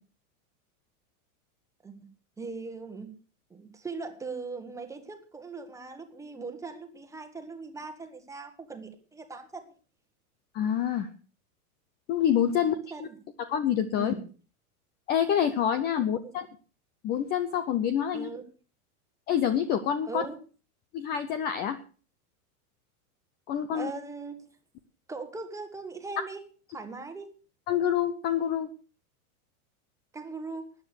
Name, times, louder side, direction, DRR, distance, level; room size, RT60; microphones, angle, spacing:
voice 1, 2.4-3.1 3.5-9.7 12.7-13.2 13.9-14.3 16.2-16.3 18.1-18.4 20.0-20.4 23.7-24.4 25.1-26.4 26.7-27.3 30.1-30.7, right 4 dB, 5° right, 7 dB, 1.4 m, -40 dB
voice 2, 10.5-11.1 12.1-13.1 13.5-14.1 15.1-16.5 17.0-18.3 19.3-20.2 20.9-21.8 23.5-23.9 27.7-28.7, left 9 dB, 20° left, 12 dB, 0.6 m, -27 dB
13.5 x 9.7 x 6.4 m, 0.38 s
supercardioid pair, 155°, 44 cm